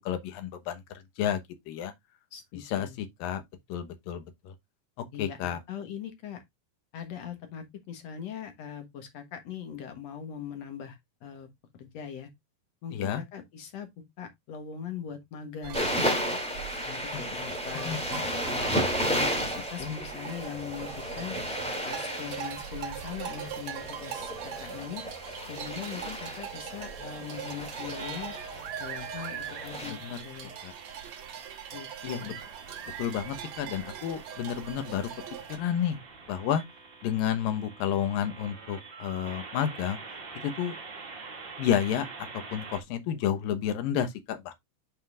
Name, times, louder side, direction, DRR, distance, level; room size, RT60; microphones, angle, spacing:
voice 1, 0.1-0.8 1.2-1.4 1.7-1.9 2.7-3.4 3.7-4.5 5.2-5.6 12.9-13.2 17.8-18.2 19.8-20.0 29.9-30.2 30.6-30.7 32.0-32.3 33.0-35.1 35.5-36.0 36.3-36.6 37.0-40.0 40.4-40.8 41.6-42.1 42.5-44.5, left 9 dB, 80° left, 2.9 m, -30 dB
voice 2, 2.3-3.0 5.1-6.4 6.9-11.5 11.7-12.3 12.8-16.4 16.9-18.0 18.4-18.7 19.1-21.4 21.9-25.0 25.5-28.3 28.8-30.5 31.7-32.4, left 8 dB, 60° left, 2.1 m, -41 dB
sound 1, 15.6-35.6, right 9 dB, 65° right, 1.9 m, -41 dB
sound 2, 15.7-29.9, equal, ahead, 1.7 m, -33 dB
sound 3, 28.0-42.8, right 4 dB, 35° right, 2.4 m, -46 dB
9.3 x 5.2 x 2.4 m
omnidirectional pair, 4.0 m